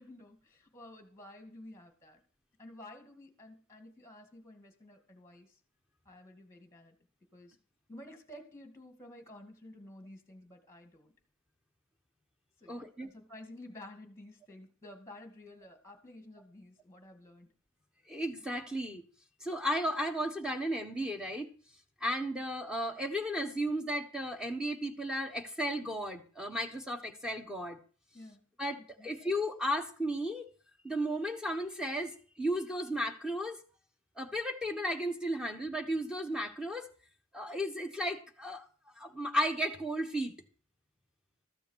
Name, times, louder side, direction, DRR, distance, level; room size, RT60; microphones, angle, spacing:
voice 1, 0.0-2.2 2.6-5.6 6.1-7.0 7.3-7.6 7.9-11.1 12.6-17.5 28.1-28.4 28.8-29.1, left 1 dB, 15° left, 6 dB, 2.2 m, -52 dB
voice 2, 12.7-13.1 18.1-19.0 19.4-21.5 22.0-27.8 28.6-30.5 30.8-33.6 34.2-36.9 37.3-38.6 39.0-40.3, equal, 5° right, 5 dB, 1.4 m, -34 dB
14.0 x 6.9 x 6.5 m, 0.41 s
head